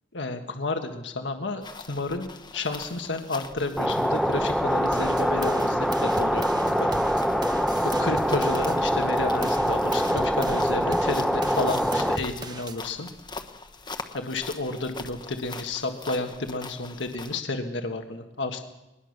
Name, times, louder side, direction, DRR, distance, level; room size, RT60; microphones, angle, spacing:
voice 1, 0.1-6.9 7.8-13.1 14.1-18.6, left 2 dB, 80° left, 5 dB, 1.6 m, -31 dB
sound 1, 1.6-17.4, left 3 dB, 25° left, 1.2 m, -43 dB
sound 2, 3.8-12.2, equal, ahead, 0.9 m, -24 dB
sound 3, 4.9-8.8 9.2-12.8, right 2 dB, 25° right, 1.1 m, -39 dB
21.5 x 20.5 x 6.6 m, 1.0 s
head